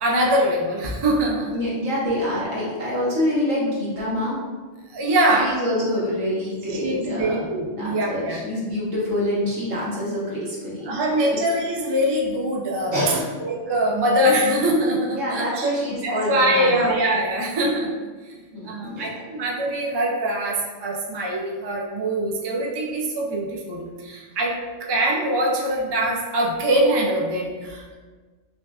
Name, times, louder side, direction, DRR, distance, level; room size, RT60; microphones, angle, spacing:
voice 1, 0.0-1.5 4.9-5.5 6.8-8.4 10.8-13.0 13.4-15.7 16.0-17.9 18.6-27.9, right 1 dB, 35° right, -1 dB, 0.4 m, -23 dB
voice 2, 1.5-4.4 5.4-7.3 7.7-10.9 12.9-13.3 15.1-16.8 18.5-19.1, left 1 dB, 85° right, -7 dB, 1.7 m, -26 dB
5.8 x 2.5 x 2.3 m, 1.3 s
omnidirectional pair, 1.3 m